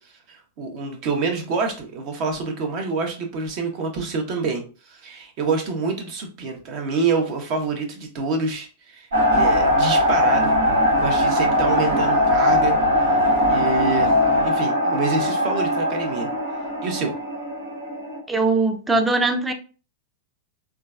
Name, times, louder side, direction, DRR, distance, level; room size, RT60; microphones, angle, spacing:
voice 1, 0.3-10.5 10.9-12.8 13.4-14.1 14.4-16.3 16.8-17.1, right 4 dB, 50° right, 0.9 m, -27 dB
sound 1, 9.1-18.2, left 1 dB, 80° right, 1.4 m, -20 dB
voice 2, 18.3-19.5, right 3 dB, 10° right, 0.5 m, -20 dB
3.7 x 2.3 x 2.4 m
hypercardioid pair, 105°, 0 cm